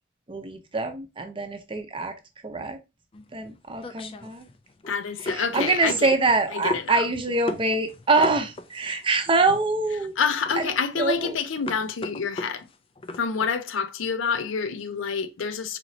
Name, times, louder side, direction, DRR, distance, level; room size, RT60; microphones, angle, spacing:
voice 1, 0.3-2.1 2.4-2.8 3.3-4.4 5.2-10.2 10.5-11.4, right 3 dB, 25° right, 0.6 m, -25 dB
sound 1, 3.1-13.5, left 2 dB, 30° left, 0.3 m, -37 dB
voice 2, 4.9-6.1 6.5-6.8 10.2-12.7 13.1-15.8, left 6 dB, 85° left, 0.5 m, -27 dB
4.2 x 3.0 x 2.7 m
head